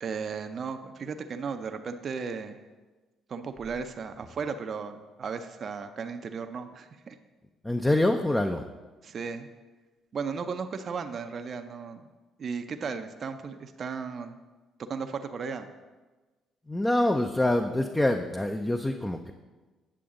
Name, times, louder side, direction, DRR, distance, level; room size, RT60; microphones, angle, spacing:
voice 1, 0.0-2.6 3.3-7.2 9.0-9.5 10.1-12.0 12.4-14.4 14.9-15.7, right 5 dB, 50° right, 8 dB, 0.6 m, -35 dB
voice 2, 7.6-8.6 16.7-19.3, left 1 dB, 10° left, 5 dB, 0.5 m, -25 dB
8.7 x 6.7 x 3.8 m, 1.3 s
supercardioid pair, 65°, 0 cm